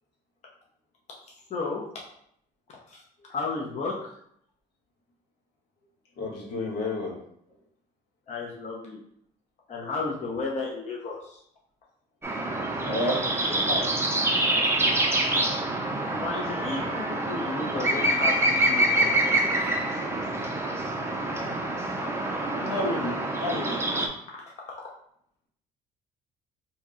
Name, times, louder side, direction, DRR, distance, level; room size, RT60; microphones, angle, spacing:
voice 1, 1.3-1.8 2.9-3.0 3.3-3.9 8.3-9.0 9.7-11.4 16.2-19.7 24.7-24.8, left 3 dB, 40° left, -3 dB, 0.7 m, -33 dB
voice 2, 6.2-7.1 12.8-13.2 13.5-13.8 22.0-22.2 22.5-23.8, left 1 dB, 80° left, -3 dB, 1.3 m, -31 dB
sound 1, 12.2-24.1, right 1 dB, 15° right, 0.5 m, -26 dB
2.9 x 2.7 x 3.7 m, 0.69 s
cardioid pair, 110°, 17 cm